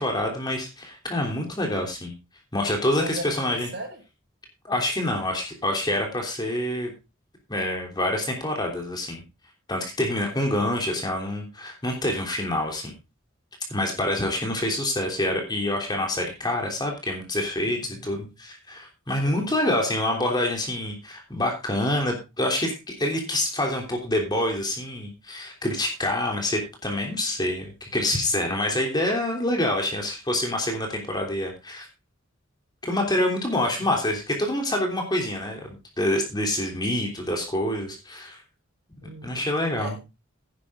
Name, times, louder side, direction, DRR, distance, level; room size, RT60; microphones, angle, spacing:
voice 1, 0.0-2.1 2.5-3.7 4.6-6.9 7.5-9.2 9.7-12.9 13.7-31.9 32.8-38.4 39.2-40.0, left 1 dB, 20° left, 1 dB, 3.2 m, -26 dB
voice 2, 2.9-4.0 17.6-18.1 19.2-19.5 26.1-26.3 33.6-33.9 39.0-39.5 39.8-40.0, right 1 dB, 55° right, 2 dB, 5.1 m, -38 dB
11.5 x 10.5 x 3.7 m, 0.28 s
head